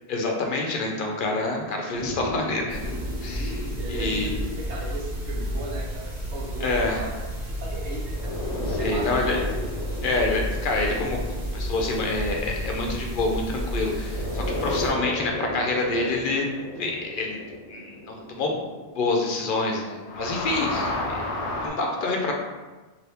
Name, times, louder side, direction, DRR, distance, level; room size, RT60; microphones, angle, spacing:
voice 1, 0.1-2.9 3.2-3.6 3.9-4.3 6.6-7.0 8.7-9.4 10.0-17.4 17.7-18.7 18.9-22.3, left 2 dB, 60° left, 0 dB, 0.6 m, -27 dB
sound 1, 1.9-6.4 8.1-13.6 14.0-19.7 20.0-21.7, left 1 dB, 85° left, 0.9 m, -34 dB
sound 2, 2.7-14.9, equal, 60° right, 1.2 m, -32 dB
voice 2, 3.4-6.7 6.9-7.1 7.6-8.3 8.7-9.4, right 2 dB, 80° right, -3 dB, 0.9 m, -37 dB
2.8 x 2.6 x 3.3 m, 1.2 s
omnidirectional pair, 1.1 m